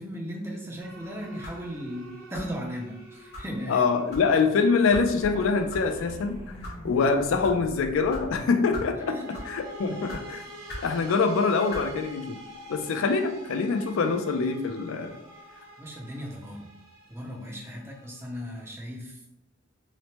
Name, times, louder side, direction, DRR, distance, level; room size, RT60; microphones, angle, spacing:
voice 1, 0.0-3.9 9.1-9.3 15.8-16.7 17.1-19.3, equal, 10° right, -1 dB, 0.4 m, -37 dB
sound 1, 0.8-7.3 8.8-18.7, right 2 dB, 80° right, 0.7 m, -47 dB
sound 2, 1.4-1.7 2.3-2.6 3.3-3.5 4.1-4.3 4.9-5.1 5.7-5.8 6.4-6.8 7.4-7.6 8.1-8.2 8.7-8.9 9.3-9.6 10.1-10.2 10.7-10.9 11.7-11.9, left 1 dB, 50° left, 0.8 m, -38 dB
voice 2, 3.7-6.4 6.8-9.2 9.5-10.4 10.8-12.4 12.7-15.2, left 4 dB, 70° left, 6 dB, 0.3 m, -24 dB
sound 3, 5.2-8.4, equal, 35° right, 0.8 m, -42 dB
3.0 x 2.0 x 2.8 m, 0.81 s
head